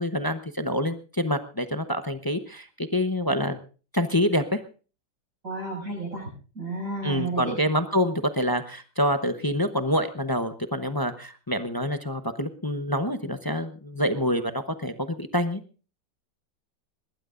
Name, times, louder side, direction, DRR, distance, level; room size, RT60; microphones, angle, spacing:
voice 1, 0.0-3.6 3.9-4.6 7.0-15.6, equal, 20° left, 8 dB, 0.5 m, -26 dB
voice 2, 5.4-6.3 6.6-7.5, right 3 dB, 50° right, -4 dB, 7.2 m, -32 dB
21.5 x 19.5 x 2.5 m, 0.37 s
omnidirectional pair, 1.9 m